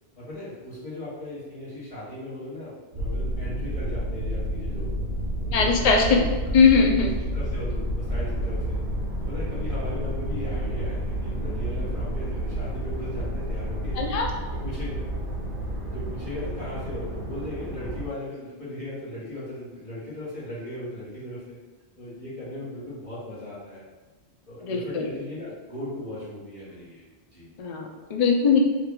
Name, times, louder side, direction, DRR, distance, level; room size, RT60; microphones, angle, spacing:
voice 1, 0.2-4.9 5.4-5.7 6.1-6.5 7.3-8.8 9.2-14.0 14.5-15.1 15.6-21.6 22.0-23.8 24.5-27.0 27.3-27.5, left 1 dB, 30° left, -11 dB, 1.2 m, -37 dB
sound 1, 2.9-18.1, equal, 50° right, 1.2 m, -30 dB
voice 2, 5.5-6.2 6.5-7.1 14.0-14.3 24.6-25.1 27.6-28.6, left 5 dB, 65° left, 2 dB, 0.4 m, -20 dB
3.0 x 2.3 x 3.6 m, 1.2 s
omnidirectional pair, 1.2 m